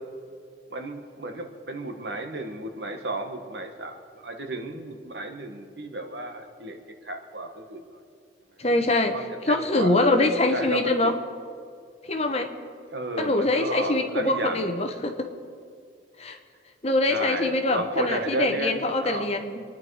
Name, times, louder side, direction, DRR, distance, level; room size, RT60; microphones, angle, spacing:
voice 1, 0.7-6.8 7.0-7.8 9.1-11.1 12.9-14.9 17.1-19.3, right 2 dB, 70° right, 5 dB, 1.5 m, -33 dB
voice 2, 8.6-11.1 12.0-12.5 13.2-15.3 16.2-16.4 16.8-19.6, left 2 dB, 35° left, 6 dB, 1.1 m, -24 dB
26.5 x 10.5 x 4.9 m, 2.3 s
head